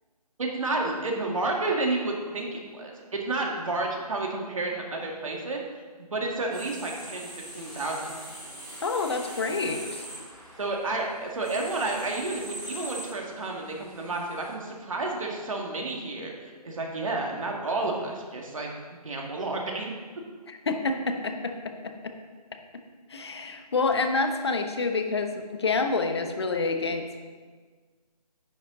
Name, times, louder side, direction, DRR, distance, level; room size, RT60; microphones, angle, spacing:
voice 1, 0.4-5.6 6.1-8.2 10.6-18.7 19.0-19.9, right 2 dB, 55° right, 0 dB, 2.0 m, -31 dB
sound 1, 6.5-14.5, right 1 dB, 5° right, 2.4 m, -42 dB
voice 2, 8.8-10.1 20.5-22.1 23.1-27.2, left 3 dB, 40° left, 6 dB, 0.9 m, -28 dB
10.5 x 8.3 x 3.8 m, 1.5 s
figure-of-eight pair, 165°, 21 cm